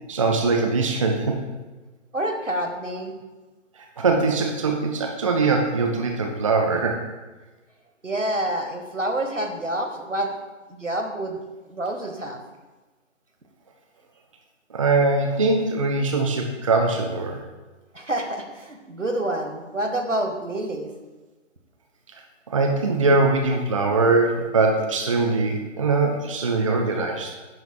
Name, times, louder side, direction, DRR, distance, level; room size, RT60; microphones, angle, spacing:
voice 1, 0.1-1.4 4.0-7.0 14.7-17.4 22.5-27.3, right 3 dB, 25° right, 3 dB, 0.6 m, -22 dB
voice 2, 2.1-3.1 8.0-10.4 10.7-11.4 11.7-12.4 17.9-20.9, right 1 dB, 80° right, 5 dB, 1.5 m, -28 dB
10.5 x 9.2 x 2.3 m, 1.2 s
figure-of-eight pair, 140°, 37 cm